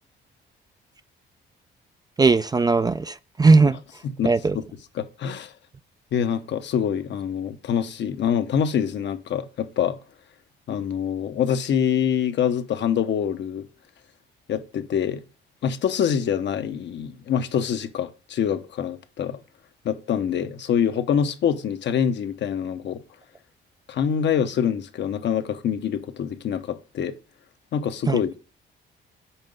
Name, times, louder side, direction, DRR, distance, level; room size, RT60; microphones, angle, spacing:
voice 1, 2.2-3.8 4.2-4.6 28.1-28.2, right 3 dB, 20° right, 0.3 m, -18 dB
voice 2, 4.2-4.6 4.9-5.5 6.1-10.0 10.7-13.7 14.5-15.2 15.6-19.4 19.8-23.0 23.9-27.2 27.7-28.4, left 8 dB, 65° left, 0.8 m, -25 dB
5.7 x 4.8 x 5.3 m
cardioid pair, 90°, 20 cm